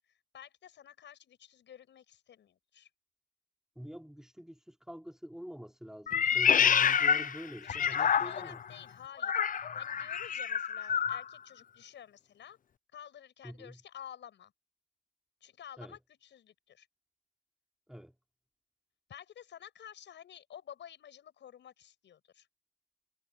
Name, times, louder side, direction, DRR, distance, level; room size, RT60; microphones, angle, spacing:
voice 1, 0.0-2.9 7.6-12.6 12.9-14.5 15.4-16.9 19.1-22.5, left 9 dB, 65° left, 7.6 m, -51 dB
voice 2, 3.8-8.6 13.4-13.8 15.8-16.0 17.9-18.1, equal, 5° right, 4.5 m, -46 dB
Meow, 6.1-8.6 9.2-11.2, left 8 dB, 45° left, 0.7 m, -28 dB
cardioid pair, 90°, 20 cm